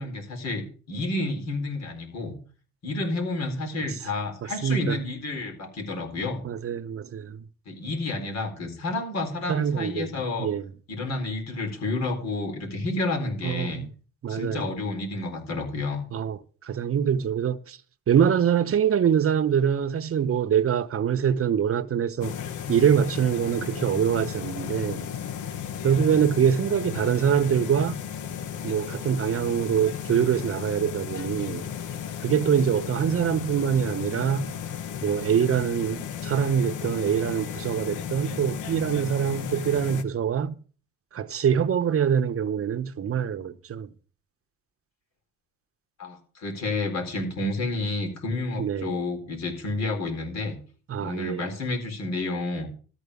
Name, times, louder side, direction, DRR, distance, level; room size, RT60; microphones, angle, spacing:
voice 1, 0.0-2.3 2.8-6.4 7.7-10.5 10.9-13.8 14.3-16.0 46.0-50.6 51.0-52.7, left 2 dB, 60° left, 4.2 m, -30 dB
voice 2, 4.6-5.0 6.4-7.4 9.5-10.1 10.4-10.7 13.4-13.9 14.2-14.7 16.1-17.8 18.1-22.3 22.7-25.1 25.8-28.0 28.6-31.7 32.2-34.5 35.0-40.6 41.1-43.9 48.6-49.0 50.9-51.5, right 8 dB, 50° right, 0.9 m, -24 dB
sound 1, 22.2-40.0, left 8 dB, 80° left, 1.1 m, -34 dB
13.5 x 4.5 x 8.3 m
cardioid pair, 90°, 30 cm